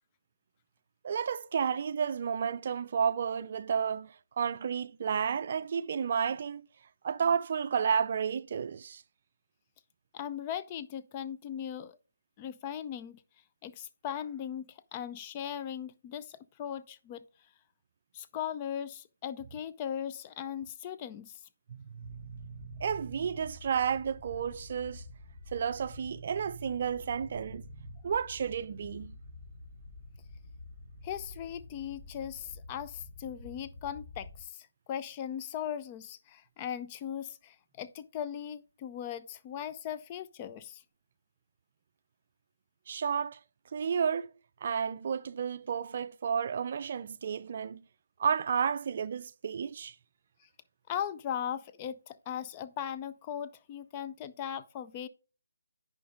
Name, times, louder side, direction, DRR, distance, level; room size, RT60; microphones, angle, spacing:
voice 1, 1.0-6.6 7.0-9.0 21.7-25.0 25.5-27.7 28.0-29.2 42.9-43.4 43.7-44.3 44.6-47.8 48.2-49.9, right 7 dB, 45° right, 0.4 m, -32 dB
voice 2, 10.1-12.0 12.4-13.2 13.6-17.2 18.1-21.4 31.0-40.8 50.9-55.1, left 9 dB, 25° left, 0.5 m, -38 dB
sound 1, 22.0-34.4, left 3 dB, 60° left, 3.3 m, -49 dB
10.0 x 5.1 x 3.6 m
figure-of-eight pair, 155°, 0 cm